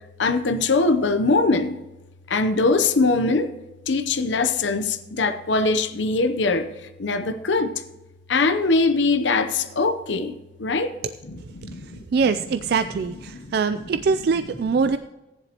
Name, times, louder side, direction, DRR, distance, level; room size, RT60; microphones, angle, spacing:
voice 1, 0.2-1.8 2.3-3.5 3.9-6.7 7.0-7.7 8.3-10.3 10.6-10.9 11.3-12.0 13.3-13.6, left 3 dB, 75° left, 10 dB, 0.7 m, -22 dB
voice 2, 12.1-15.0, right 5 dB, 55° right, 10 dB, 0.3 m, -23 dB
15.0 x 10.5 x 2.9 m, 1.1 s
head